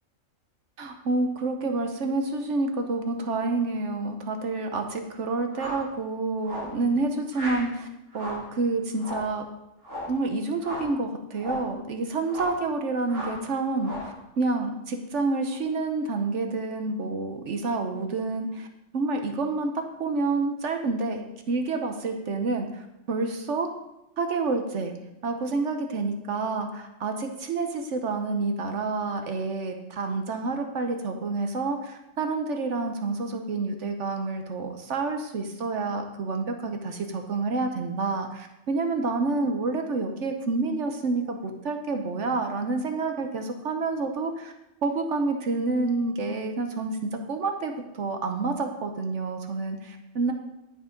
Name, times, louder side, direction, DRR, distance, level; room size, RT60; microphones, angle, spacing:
voice 1, 0.8-7.9 8.1-9.4 10.1-18.7 18.9-23.7 24.2-24.9 25.2-44.5 44.8-49.8 50.1-50.3, right 3 dB, 70° right, 5 dB, 1.2 m, -28 dB
sound 1, 5.5-5.9 6.4-6.8 7.3-7.7 8.1-8.5 9.0-9.4 9.8-10.2 10.6-11.0 11.4-11.7 12.3-12.6 13.1-13.4 13.8-14.2, left 1 dB, 90° right, 3.4 m, -36 dB
11.5 x 6.7 x 5.1 m, 0.91 s
omnidirectional pair, 1.3 m